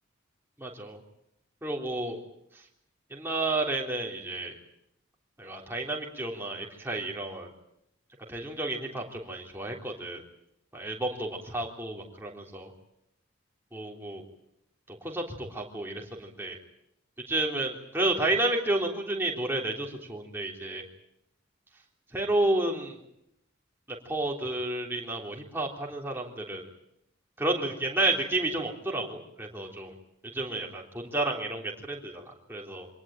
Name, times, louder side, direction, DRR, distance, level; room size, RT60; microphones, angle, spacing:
voice 1, 0.6-1.0 1.6-2.2 3.1-4.5 5.4-7.5 8.3-10.2 10.7-12.7 13.7-14.2 14.9-16.6 17.3-20.8 22.1-23.0 24.1-26.6 27.4-29.9 30.3-32.9, right 2 dB, 10° right, -1 dB, 3.5 m, -31 dB
25.5 x 19.0 x 8.9 m, 0.80 s
head